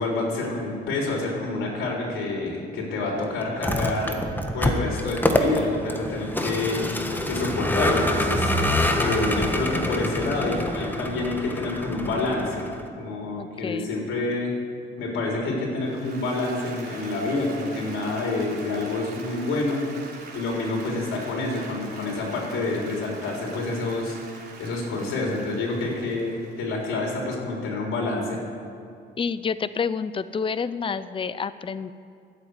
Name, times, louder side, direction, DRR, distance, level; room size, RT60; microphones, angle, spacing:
voice 1, 0.0-4.2 4.5-8.5 9.0-12.7 13.0-14.5 15.0-19.8 20.3-24.2 24.6-28.4, left 2 dB, 90° left, -2 dB, 3.7 m, -28 dB
Vehicle, 3.5-12.9, left 1 dB, 10° left, 1.4 m, -26 dB
voice 2, 13.4-13.9 29.2-31.9, left 5 dB, 25° left, 14 dB, 0.6 m, -29 dB
Applause, 15.8-27.2, right 4 dB, 55° right, 3.4 m, -44 dB
13.5 x 8.0 x 9.6 m, 2.4 s
cardioid pair, 90°, 20 cm